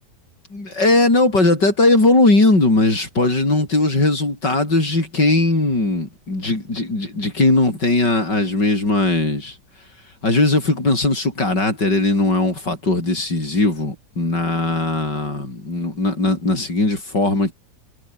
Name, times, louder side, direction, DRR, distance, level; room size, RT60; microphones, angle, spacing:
voice 1, 0.5-9.6 10.2-17.5, left 2 dB, 85° left, 7.8 m, -19 dB
omnidirectional pair, 1.8 m